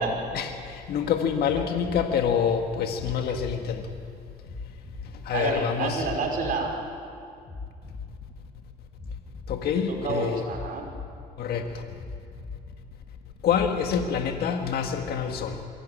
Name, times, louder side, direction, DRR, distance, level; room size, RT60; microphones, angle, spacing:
voice 1, 0.3-3.9 5.2-6.1 9.5-10.4 11.4-11.8 13.4-15.6, left 7 dB, 70° left, 4 dB, 1.7 m, -27 dB
sound 1, 1.5-2.0 3.0-3.5 4.5-5.0 6.0-6.6 7.5-8.1 9.0-9.6 10.5-11.1 12.0-12.6 13.5-14.1 15.0-15.1, left 4 dB, 15° left, 7.7 m, -38 dB
voice 2, 5.3-6.7 9.9-10.9, right 4 dB, 55° right, 0 dB, 5.2 m, -29 dB
23.0 x 16.5 x 8.8 m, 2.3 s
cardioid pair, 110°, 17 cm